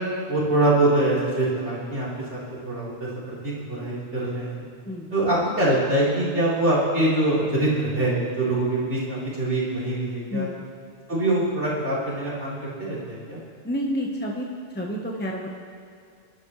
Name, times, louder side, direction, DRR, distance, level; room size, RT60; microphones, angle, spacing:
voice 1, 0.3-2.4 2.6-3.1 3.4-4.6 5.1-10.5 11.1-13.4, right 2 dB, 70° right, -8 dB, 4.4 m, -24 dB
voice 2, 13.6-14.5 14.7-15.5, equal, 10° left, -1 dB, 1.1 m, -29 dB
23.5 x 12.0 x 3.3 m, 2.3 s
omnidirectional pair, 1.2 m